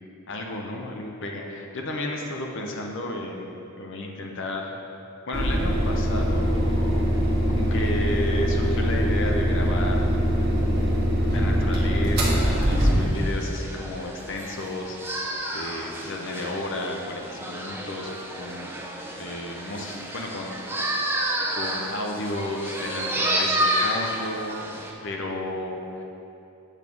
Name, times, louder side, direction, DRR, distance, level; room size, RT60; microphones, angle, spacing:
voice 1, 0.3-4.8 5.3-7.1 7.5-10.1 10.7-15.3 15.5-18.1 18.4-18.7 19.2-20.5 21.5-26.0, left 1 dB, 60° left, 1 dB, 0.7 m, -33 dB
sound 1, 5.3-13.4, equal, 50° right, 1.4 m, -22 dB
sound 2, 12.4-24.9, right 1 dB, 10° right, 0.6 m, -30 dB
8.2 x 3.6 x 6.0 m, 2.8 s
head